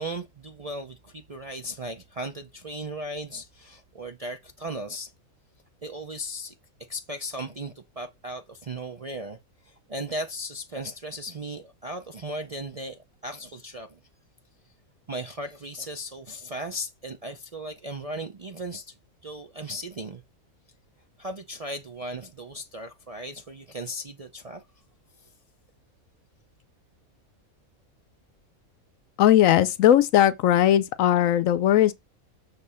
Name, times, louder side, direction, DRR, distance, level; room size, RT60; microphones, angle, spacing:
voice 1, 0.0-5.1 5.8-6.5 6.9-9.4 9.6-14.0 15.1-18.9 19.2-20.2 21.2-24.6 25.2-25.3, right 1 dB, 45° right, 0.5 m, -36 dB
voice 2, 29.2-31.9, left 11 dB, 75° left, 1.0 m, -19 dB
6.7 x 3.3 x 5.5 m
omnidirectional pair, 1.5 m